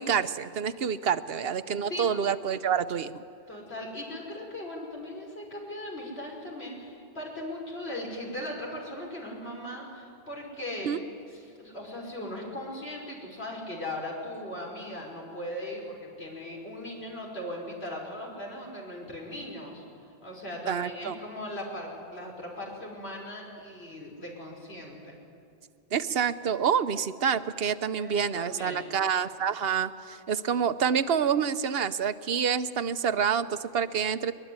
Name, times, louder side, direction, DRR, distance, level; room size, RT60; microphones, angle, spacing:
voice 1, 0.0-3.2 10.8-11.0 20.7-21.2 25.9-34.3, right 7 dB, 75° right, 13 dB, 1.0 m, -27 dB
voice 2, 3.5-10.9 11.3-19.8 20.2-25.2 27.9-29.0, left 1 dB, 90° left, -1 dB, 5.8 m, -38 dB
22.0 x 22.0 x 9.6 m, 2.4 s
omnidirectional pair, 1.0 m